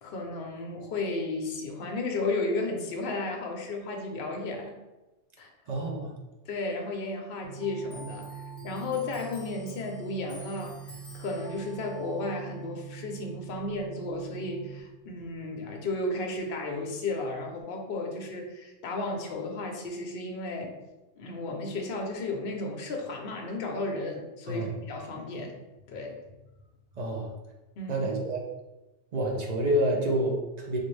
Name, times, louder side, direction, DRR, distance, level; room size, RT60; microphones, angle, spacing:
voice 1, 0.0-4.8 5.4-5.5 6.5-20.7 21.2-25.5 25.9-26.4 27.8-28.1, left 2 dB, 55° left, 2 dB, 0.8 m, -34 dB
voice 2, 5.7-6.1 24.5-24.7 27.0-27.3 27.9-28.4 29.1-30.8, right 1 dB, 50° right, 0 dB, 0.5 m, -28 dB
sound 1, 7.4-14.8, right 8 dB, 75° right, 1.0 m, -43 dB
Clock, 7.9-14.9 15.2-16.5 16.8-17.6, left 1 dB, 15° left, 0.9 m, -54 dB
3.6 x 2.5 x 3.1 m, 1.0 s
omnidirectional pair, 1.3 m